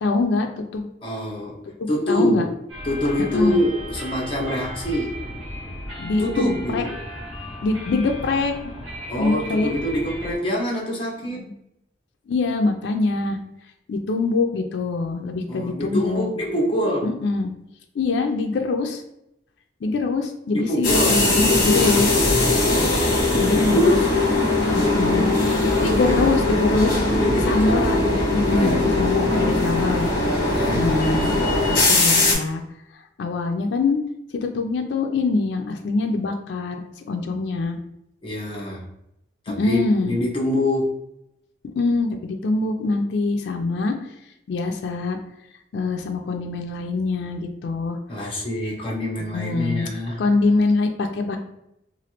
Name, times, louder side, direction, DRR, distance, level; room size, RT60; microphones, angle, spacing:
voice 1, 0.0-0.9 1.8-2.5 3.2-3.6 6.0-6.2 6.7-6.8 7.6-8.5 9.2-9.7 11.3-11.5 12.3-13.4 13.9-16.3 17.0-17.5 18.0-19.0 19.8-22.2 23.3-24.0 24.7-25.3 25.8-27.0 27.5-30.1 30.7-31.3 31.7-32.6 32.9-34.0 34.4-37.8 39.6-40.2 41.6-44.0 44.5-45.2 45.7-48.0 49.3-49.9 50.2-51.4, left 3 dB, 75° left, 4 dB, 0.3 m, -24 dB
voice 2, 1.0-1.6 1.9-2.5 2.8-5.2 6.0-7.0 9.1-11.4 15.5-17.1 20.5-21.2 23.5-24.1 25.8-26.2 27.1-27.8 28.5-29.3 30.3-30.9 38.2-38.9 39.4-41.0 48.1-50.2, left 1 dB, 30° left, -3 dB, 0.8 m, -25 dB
sound 1, 2.7-10.4, equal, 35° right, 1.4 m, -35 dB
sound 2, 20.8-32.3, left 2 dB, 50° left, 1.2 m, -20 dB
3.0 x 2.4 x 2.8 m, 0.82 s
head